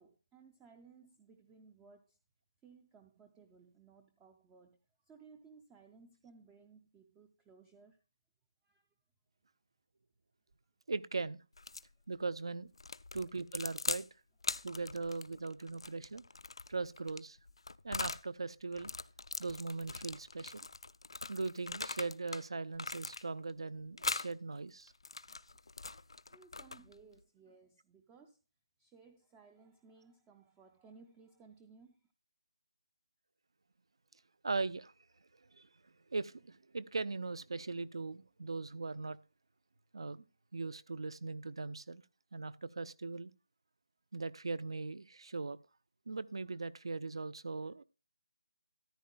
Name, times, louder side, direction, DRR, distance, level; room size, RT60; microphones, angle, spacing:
voice 1, 0.0-2.2 2.6-8.0 8.6-8.9 26.3-28.4 28.8-32.1, right 5 dB, 10° right, 0.4 m, -60 dB
voice 2, 10.9-11.4 12.1-12.7 13.1-14.1 14.6-16.2 16.7-17.4 17.8-18.9 19.4-20.7 21.3-24.9 34.4-34.9 35.5-39.2 39.9-40.2 40.5-42.0 42.3-43.3 44.1-45.6 46.1-47.8, right 3 dB, 70° right, 0.6 m, -39 dB
sound 1, 11.6-11.9 12.8-14.1 14.4-18.3 18.7-22.4 22.7-23.5 24.0-24.3 24.9-27.0, left 3 dB, 85° left, 0.5 m, -41 dB
13.5 x 10.5 x 2.2 m
figure-of-eight pair, 170°, 3 cm